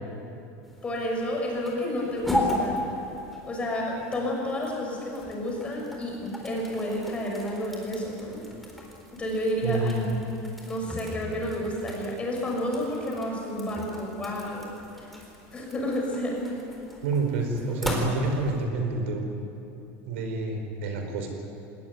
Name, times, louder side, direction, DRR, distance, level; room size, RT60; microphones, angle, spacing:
sound 1, 0.6-18.7, left 1 dB, ahead, 4.0 m, -37 dB
voice 1, 0.8-2.8 3.4-8.4 9.2-10.1 10.7-14.7 15.0-15.1 15.5-16.4, equal, 15° left, -1 dB, 6.4 m, -30 dB
voice 2, 9.6-10.0 17.0-19.2 20.1-21.3, right 3 dB, 85° right, 4 dB, 4.7 m, -28 dB
20.0 x 19.5 x 9.7 m, 2.8 s
supercardioid pair, 145°, 7 cm